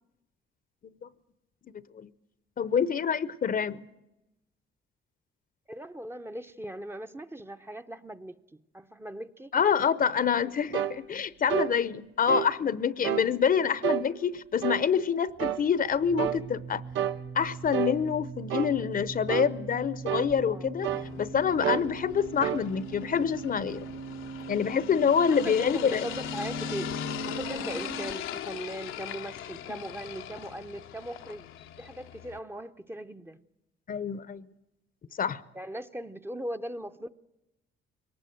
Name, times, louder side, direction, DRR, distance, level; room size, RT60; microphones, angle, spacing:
voice 1, 2.6-3.8 9.5-16.8 17.3-20.9 21.2-23.9 24.5-26.1 33.9-34.5 35.2-35.4, left 7 dB, 45° left, 0.7 m, -26 dB
voice 2, 5.7-9.5 20.4-20.7 25.3-26.9 27.2-31.5 31.8-33.4 35.5-37.1, right 1 dB, 10° right, 0.7 m, -39 dB
sound 1, 10.7-11.0 11.5-11.7 12.3-12.5 13.0-13.3 13.8-14.1 14.6-14.9 15.4-15.6 16.2-16.4 17.0-17.2 17.7-18.0 18.5-18.7 19.3-19.5 20.1-20.3 20.8-21.1 21.6-21.9 22.4-22.6, right 11 dB, 85° right, 0.7 m, -29 dB
sound 2, 15.3-28.1, right 5 dB, 50° right, 2.3 m, -41 dB
sound 3, 20.8-32.4, left 10 dB, 85° left, 0.8 m, -40 dB
22.5 x 19.0 x 7.8 m
cardioid pair, 90°, 20 cm